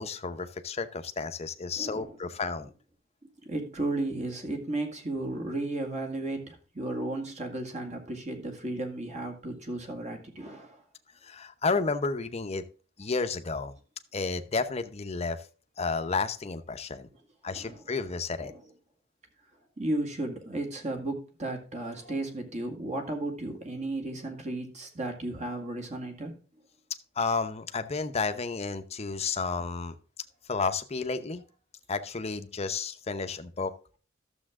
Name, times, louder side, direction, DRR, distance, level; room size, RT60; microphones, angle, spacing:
voice 1, 0.0-2.7 11.2-12.6 13.0-13.7 14.1-15.4 15.8-17.1 17.4-18.5 27.2-29.9 30.5-31.4 31.9-34.0, left 4 dB, 30° left, 9 dB, 0.8 m, -31 dB
voice 2, 1.8-2.1 3.5-10.8 17.5-17.8 18.4-18.6 19.8-26.3, right 2 dB, 35° right, 4 dB, 2.0 m, -34 dB
12.0 x 7.1 x 3.6 m, 0.38 s
head